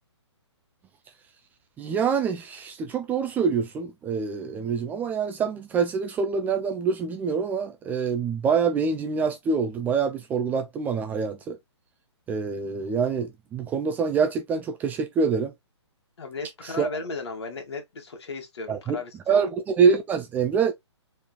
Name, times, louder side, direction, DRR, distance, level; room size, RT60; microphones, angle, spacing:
voice 1, 1.8-11.6 12.3-15.5 16.8-16.9 18.7-19.0 19.3-20.7, right 6 dB, 10° right, 0.4 m, -25 dB
voice 2, 16.2-19.5, left 3 dB, 65° left, 2.0 m, -36 dB
4.5 x 3.5 x 2.3 m
hypercardioid pair, 140°, 15 cm